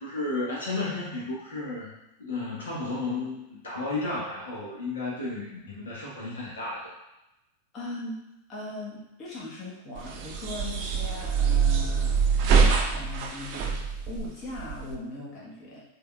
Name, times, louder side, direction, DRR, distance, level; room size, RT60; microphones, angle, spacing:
voice 1, 0.0-1.9 2.2-6.9, left 2 dB, 70° left, -5 dB, 1.6 m, -33 dB
voice 2, 7.7-8.2 8.5-12.2 12.9-13.8 14.1-15.8, left 2 dB, 30° left, -6 dB, 1.3 m, -39 dB
sound 1, 10.0-14.9, right 5 dB, 45° right, 0.6 m, -25 dB
6.8 x 3.0 x 2.4 m, 0.92 s
figure-of-eight pair, 90°, 0 cm